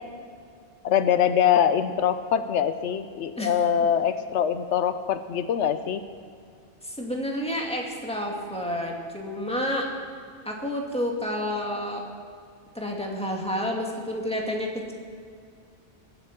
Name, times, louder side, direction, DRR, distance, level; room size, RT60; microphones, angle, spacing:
voice 1, 0.8-6.0, left 9 dB, 80° left, 11 dB, 1.0 m, -23 dB
voice 2, 6.8-9.9 10.5-12.1 12.7-14.9, equal, 5° left, 0 dB, 2.1 m, -30 dB
23.0 x 7.9 x 5.9 m, 2.3 s
omnidirectional pair, 1.2 m